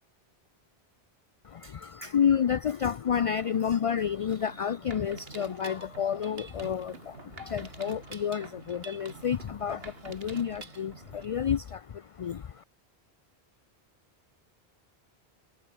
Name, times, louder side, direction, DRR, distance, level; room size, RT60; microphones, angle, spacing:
voice 1, 1.4-12.6, left 8 dB, 50° left, 0.4 m, -30 dB
Mechanisms, 4.3-11.3, right 4 dB, 65° right, 1.9 m, -47 dB
omnidirectional pair, 1.1 m